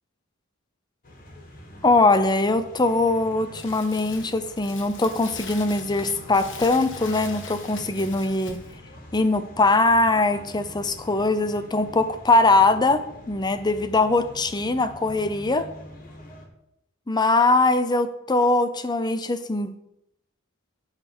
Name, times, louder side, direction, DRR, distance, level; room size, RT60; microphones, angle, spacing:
sound 1, 1.0-16.5, left 1 dB, 40° left, 1.8 m, -44 dB
voice 1, 1.8-8.6 9.1-15.7 17.1-19.7, left 2 dB, 20° left, 11 dB, 0.6 m, -21 dB
Crumpling crinkling, 3.5-8.7, left 5 dB, 55° left, 1.3 m, -42 dB
12.0 x 4.1 x 6.1 m, 0.82 s
head